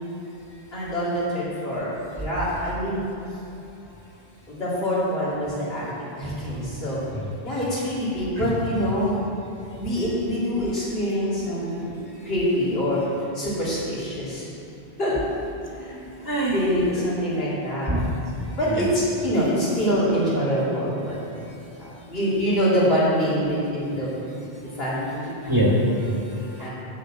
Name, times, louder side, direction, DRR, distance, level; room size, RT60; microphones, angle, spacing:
voice 1, 0.7-3.1 4.5-5.9 6.2-7.0 7.4-9.2 9.8-11.9 12.2-13.0 13.3-14.5 15.0-15.2 15.6-16.0 16.5-18.0 18.6-21.2 21.8-24.1 24.8-25.3 26.6-26.7, equal, 75° left, -9 dB, 3.0 m, -25 dB
voice 2, 16.2-16.6 17.8-18.1 18.7-18.8 25.4-26.7, equal, 20° right, -5 dB, 1.3 m, -23 dB
7.2 x 6.7 x 7.6 m, 2.8 s
omnidirectional pair, 1.0 m